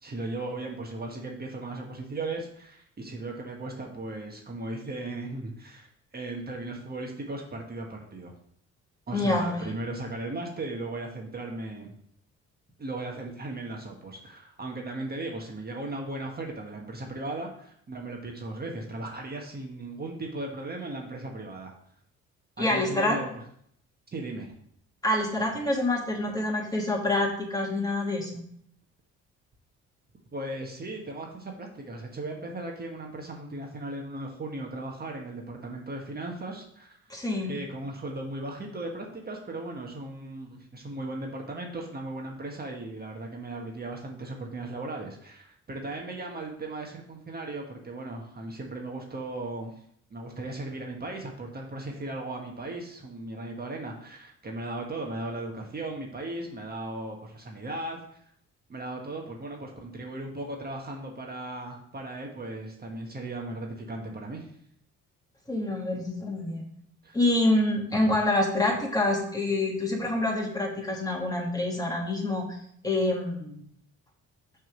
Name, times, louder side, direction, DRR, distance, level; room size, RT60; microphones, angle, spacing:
voice 1, 0.0-8.3 9.1-11.9 12.8-21.7 22.6-23.4 24.1-24.5 30.3-37.0 37.4-49.7 50.1-58.0 58.7-64.5 67.0-67.2, right 2 dB, 30° right, 1 dB, 1.3 m, -37 dB
voice 2, 9.1-9.7 22.6-23.2 25.0-28.4 37.1-37.5 65.5-66.6 67.1-72.6 72.8-73.5, left 2 dB, 10° left, 0 dB, 2.0 m, -27 dB
6.1 x 3.7 x 6.1 m, 0.66 s
cardioid pair, 90°, 30 cm